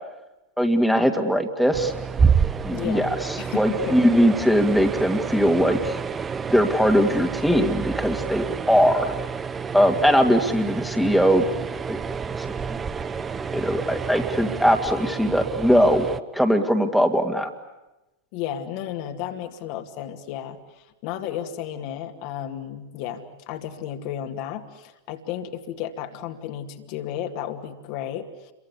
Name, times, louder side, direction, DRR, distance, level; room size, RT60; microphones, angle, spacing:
voice 1, 0.6-1.9 2.6-3.1 3.5-5.9 6.5-9.1 9.7-11.4 11.9-12.0 12.4-12.5 13.5-16.1 16.3-17.5, equal, ahead, 4 dB, 2.3 m, -20 dB
sound 1, 1.7-16.2, right 6 dB, 20° right, 1.0 m, -28 dB
voice 2, 2.7-4.0 18.3-28.5, left 10 dB, 45° left, 4 dB, 2.2 m, -33 dB
29.5 x 23.5 x 8.4 m, 1.0 s
figure-of-eight pair, 90°, 0 cm